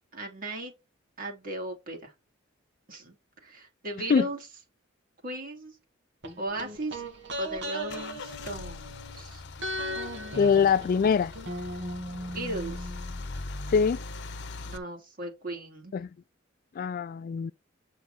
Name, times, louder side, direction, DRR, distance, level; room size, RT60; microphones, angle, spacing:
voice 1, 0.1-0.7 1.2-2.1 2.9-3.2 3.4-4.4 5.2-5.8 6.4-7.0 7.4-9.4 12.3-12.9 14.6-15.9, right 1 dB, 45° right, 2.5 m, -37 dB
sound 1, 6.2-9.2 9.6-13.4 13.7-13.8, equal, 65° right, 2.1 m, -37 dB
Car / Engine starting / Idling, 7.0-14.8, left 3 dB, 60° left, 0.8 m, -41 dB
voice 2, 10.3-11.3 13.7-14.0 15.9-16.1 16.8-17.5, left 6 dB, 45° left, 0.3 m, -23 dB
8.2 x 4.6 x 4.1 m
head